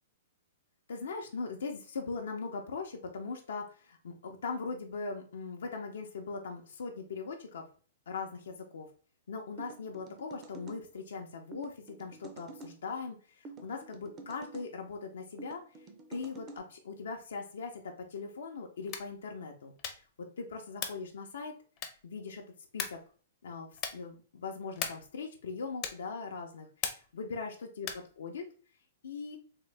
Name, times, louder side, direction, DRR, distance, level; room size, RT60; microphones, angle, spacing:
voice 1, 0.9-7.7 8.1-8.9 9.3-19.7 20.2-21.6 22.0-22.4 22.7-23.0 23.4-28.5 29.0-29.4, left 4 dB, 85° left, 1 dB, 0.6 m, -40 dB
sound 1, 9.6-10.8 11.5-12.7 13.4-14.7 15.4-16.6, right 3 dB, 25° right, 0.5 m, -48 dB
sound 2, 18.8-19.2 19.8-20.2 20.8-21.1 21.8-22.2 22.8-23.1 23.8-24.1 24.8-25.2 25.8-26.1 26.8-27.2 27.8-28.1, left 8 dB, 30° left, 0.5 m, -38 dB
3.6 x 2.0 x 3.2 m, 0.41 s
hypercardioid pair, 155°, 0 cm